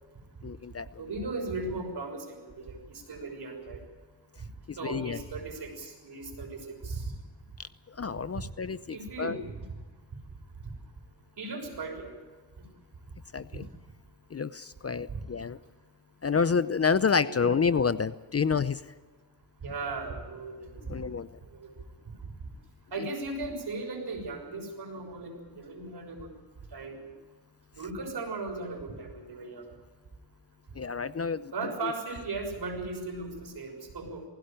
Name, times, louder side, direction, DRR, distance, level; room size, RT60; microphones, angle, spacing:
voice 1, 0.4-0.9 4.7-5.2 7.9-9.4 13.3-13.5 14.3-15.6 16.2-18.8 20.9-21.3 30.8-31.5 31.8-31.9, left 5 dB, 35° left, 15 dB, 0.7 m, -28 dB
voice 2, 1.0-3.8 4.4-4.5 4.7-7.1 8.3-8.4 8.9-9.7 11.4-12.1 15.1-15.2 17.2-17.6 19.6-21.1 21.4-22.1 22.9-26.3 26.7-27.1 27.8-29.7 31.5-34.2, right 3 dB, 60° right, 3 dB, 6.2 m, -37 dB
20.0 x 16.5 x 9.1 m, 1.4 s
cardioid pair, 80°, 44 cm